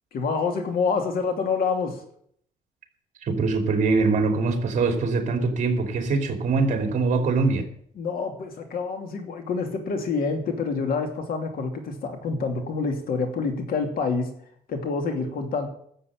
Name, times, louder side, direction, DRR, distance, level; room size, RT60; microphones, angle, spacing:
voice 1, 0.1-2.0 8.0-14.3 14.7-15.7, left 4 dB, 65° left, 5 dB, 2.8 m, -27 dB
voice 2, 3.2-7.6, right 4 dB, 50° right, 5 dB, 3.0 m, -23 dB
12.5 x 7.4 x 8.8 m, 0.66 s
cardioid pair, 130°, 16 cm